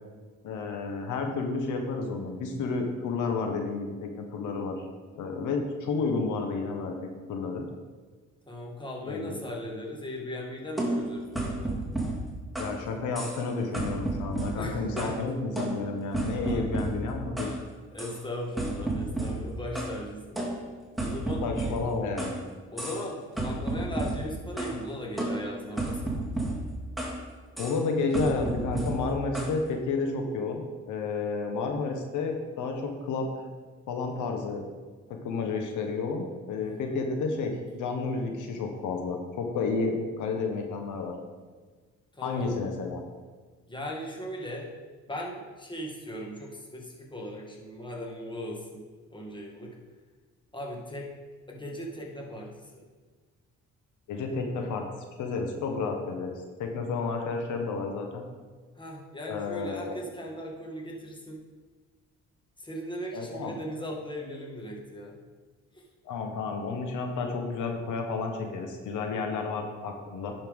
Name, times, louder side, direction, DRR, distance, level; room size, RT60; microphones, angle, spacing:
voice 1, 0.4-4.9 5.2-7.6 9.1-9.4 12.6-17.6 21.4-22.4 27.6-33.3 33.9-34.6 35.1-41.1 42.2-43.0 54.1-54.9 55.2-58.2 59.3-60.0 63.1-63.5 66.0-70.3, left 4 dB, 80° left, 3 dB, 1.1 m, -31 dB
voice 2, 8.5-11.8 14.6-15.2 16.4-16.7 17.9-20.4 21.0-21.8 22.7-26.2 36.6-37.0 42.1-42.5 43.7-44.7 45.1-48.8 49.1-49.8 50.5-51.1 51.5-52.9 58.8-61.4 62.6-65.2 65.7-65.8, equal, 15° left, -1 dB, 1.7 m, -38 dB
sound 1, 10.8-12.8 13.2-13.5 13.7-15.2 15.6-17.6 18.0-18.2 18.6-20.0 20.4-22.4 22.8-23.1 23.4-24.8 25.2-27.2 27.6-27.8 28.1-29.6, right 2 dB, ahead, 2.0 m, -32 dB
10.5 x 5.6 x 3.6 m, 1.4 s
cardioid pair, 90°, 30 cm